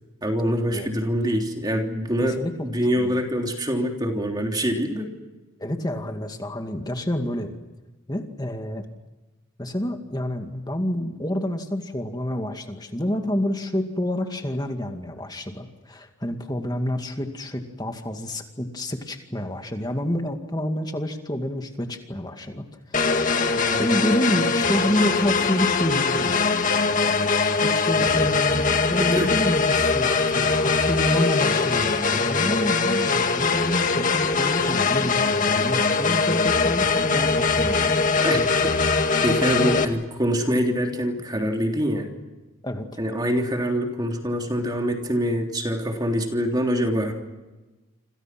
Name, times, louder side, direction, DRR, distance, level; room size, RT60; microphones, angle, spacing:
voice 1, 0.2-2.4 2.6-5.1 23.7-23.9 29.2-29.3 38.2-38.8 39.2-42.1 43.0-47.1, equal, 20° right, 2 dB, 3.3 m, -25 dB
voice 2, 2.2-2.7 3.0-3.2 5.6-7.5 8.1-8.9 9.6-23.0 23.8-26.4 27.6-38.3 39.4-39.8 42.6-42.9, left 1 dB, 20° left, 5 dB, 2.2 m, -28 dB
sound 1, 22.9-39.8, left 4 dB, 40° left, 2.0 m, -22 dB
28.5 x 27.0 x 6.1 m, 1.1 s
head